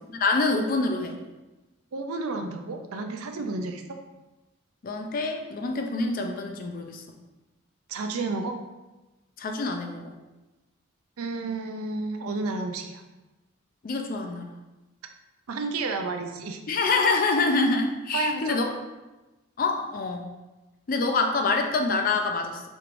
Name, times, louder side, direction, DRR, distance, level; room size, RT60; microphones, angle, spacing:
voice 1, 0.2-1.2 4.8-7.0 9.4-10.1 13.8-14.5 16.7-18.7 19.6-20.3 20.9-22.6, left 3 dB, 40° left, 4 dB, 0.4 m, -26 dB
voice 2, 1.9-4.0 7.9-8.6 11.2-13.0 15.5-16.6 18.1-18.6, right 3 dB, 90° right, 5 dB, 0.5 m, -31 dB
4.4 x 3.2 x 2.5 m, 1.1 s
head